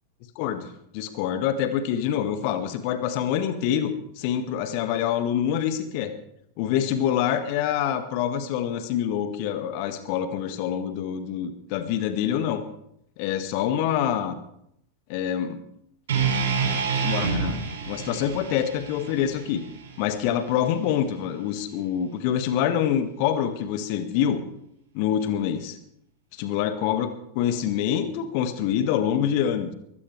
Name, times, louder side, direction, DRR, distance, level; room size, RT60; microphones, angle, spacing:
voice 1, 0.4-0.7 0.9-6.1 6.6-12.6 13.2-14.4 15.1-15.6 17.0-17.6 17.9-19.6 20.0-24.4 24.9-25.8 26.4-29.7, left 9 dB, 45° left, 9 dB, 1.8 m, -26 dB
sound 1, 16.1-20.3, right 5 dB, 60° right, 5.9 m, -28 dB
22.5 x 16.5 x 3.4 m, 0.74 s
figure-of-eight pair, 90°, 0 cm